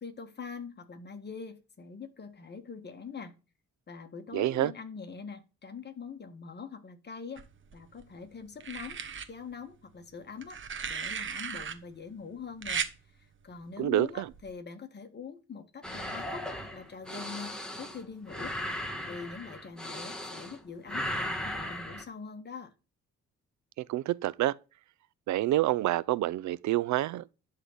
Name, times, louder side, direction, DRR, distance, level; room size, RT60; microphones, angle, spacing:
voice 1, 0.0-3.4 3.9-7.4 7.7-9.0 9.3-10.6 10.8-12.9 13.1-18.6 19.1-22.7, left 5 dB, 35° left, 1.6 m, -43 dB
voice 2, 4.3-4.7 13.8-14.3 23.8-24.5 25.3-27.3, right 15 dB, 70° right, 0.5 m, -28 dB
sound 1, 7.4-8.0 8.6-9.3 10.4-11.7 12.6-12.9 14.3-14.5, right 6 dB, 40° right, 1.2 m, -36 dB
sound 2, 15.8-20.6 20.9-22.0, left 1 dB, 5° left, 1.9 m, -37 dB
11.5 x 3.9 x 7.8 m
cardioid pair, 90°, 30 cm